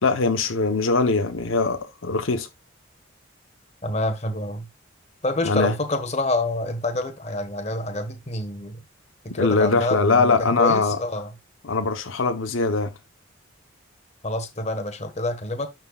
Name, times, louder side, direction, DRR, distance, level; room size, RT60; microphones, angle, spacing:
voice 1, 0.0-2.5 5.4-5.7 9.4-11.0 11.6-12.9, left 3 dB, 75° left, 0.9 m, -21 dB
voice 2, 3.8-4.7 5.2-8.8 9.2-11.3 14.2-15.7, left 2 dB, 30° left, 1.4 m, -27 dB
11.5 x 4.4 x 2.3 m
head